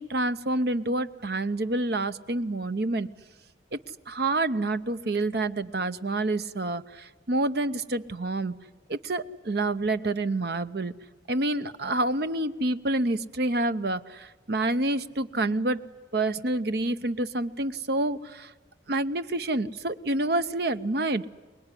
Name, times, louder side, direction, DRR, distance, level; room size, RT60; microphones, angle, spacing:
voice 1, 0.0-3.1 3.7-3.8 4.1-8.6 8.9-10.9 11.3-15.9 16.1-18.5 18.9-21.3, right 2 dB, 55° right, 11 dB, 0.8 m, -28 dB
24.5 x 20.5 x 9.9 m, 1.4 s
head